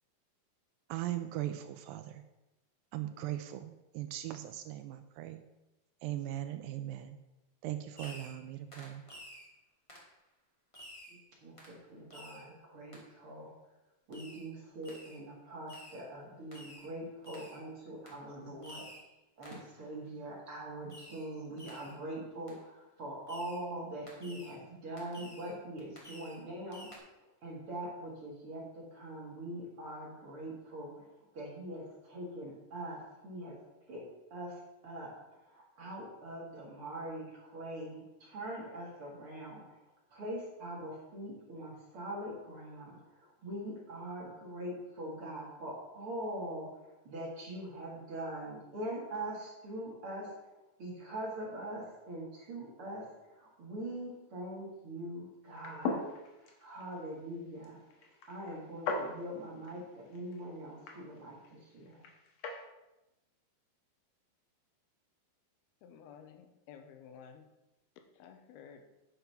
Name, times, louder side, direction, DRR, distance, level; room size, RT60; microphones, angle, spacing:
voice 1, 0.9-2.2 2.9-5.4 6.0-7.2 7.6-9.0, right 13 dB, 85° right, 9 dB, 2.0 m, -39 dB
Fireworks, 7.9-8.4 8.7-9.5 9.9-10.1 10.7-11.2 11.6-11.8 12.1-12.5 12.9-13.0 14.1-14.5 14.8-15.2 15.7-16.0 16.5-16.9 17.2-17.6 18.0-18.2 18.6-19.1 19.4-19.7 20.9-21.3 21.6-22.0 22.5-22.6 23.3-23.6 24.1-24.6 25.0-25.5 25.9-26.4 26.7-27.0, left 1 dB, 20° left, 0.9 m, -52 dB
voice 2, 11.1-13.5 14.1-18.8 19.4-31.1 31.3-33.6 33.9-34.0 34.3-35.1 35.5-39.8 40.1-46.7 47.0-50.3 50.8-57.8 58.3-62.1, right 1 dB, 40° right, -3 dB, 2.6 m, -43 dB
sound 1, 55.5-62.6, left 3 dB, 65° left, 2.5 m, -41 dB
voice 3, 65.8-67.4 68.2-68.8, left 7 dB, 85° left, 6 dB, 2.9 m, -53 dB
9.9 x 5.7 x 5.8 m, 0.98 s
omnidirectional pair, 4.5 m